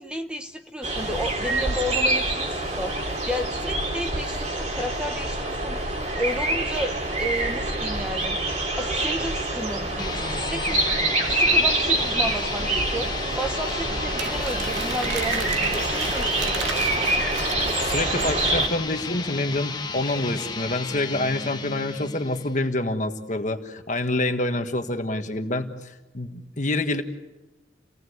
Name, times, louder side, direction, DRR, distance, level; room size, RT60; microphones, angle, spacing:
voice 1, 0.0-5.8 6.2-8.4 8.8-10.9 11.3-17.1, equal, 5° right, 5 dB, 1.0 m, -32 dB
sound 1, 0.8-18.7, right 2 dB, 40° right, 3.2 m, -26 dB
sound 2, 9.9-22.7, left 4 dB, 20° left, 1.1 m, -34 dB
Crumpling crinkling, 14.2-18.7, right 5 dB, 80° right, 2.2 m, -36 dB
voice 2, 17.8-27.0, left 2 dB, 40° left, 6 dB, 1.6 m, -27 dB
30.0 x 18.5 x 8.1 m, 1.1 s
head